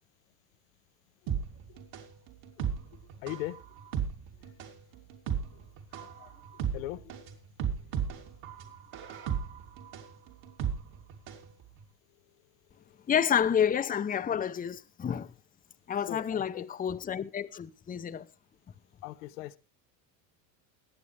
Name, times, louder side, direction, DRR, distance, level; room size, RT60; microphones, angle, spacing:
sound 1, 1.3-11.5 11.8-11.9, right 8 dB, 60° right, 2.9 m, -35 dB
voice 1, 2.9-3.6 5.5-5.6 5.9-6.4 6.7-7.2 12.7-13.1 16.1-16.7 19.0-19.6, left 16 dB, 80° left, 0.9 m, -40 dB
voice 2, 13.1-15.3 15.9-18.3, left 8 dB, 20° left, 0.7 m, -29 dB
21.5 x 8.4 x 3.3 m
supercardioid pair, 110°, 40 cm